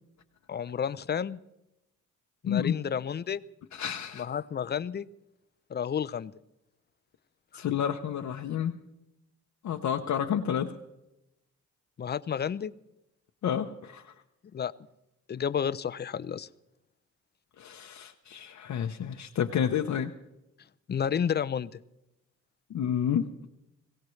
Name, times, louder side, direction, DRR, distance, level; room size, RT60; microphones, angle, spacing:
voice 1, 0.5-1.4 2.4-3.4 4.1-5.1 5.7-6.3 12.0-12.7 14.5-14.7 15.3-16.5 20.9-21.7, left 8 dB, 35° left, 17 dB, 0.5 m, -31 dB
voice 2, 3.7-4.3 7.5-8.8 9.6-10.7 13.4-14.1 17.6-20.1 22.7-23.5, left 9 dB, 65° left, 3 dB, 0.8 m, -30 dB
22.0 x 17.0 x 3.2 m, 0.91 s
cardioid pair, 90°, 31 cm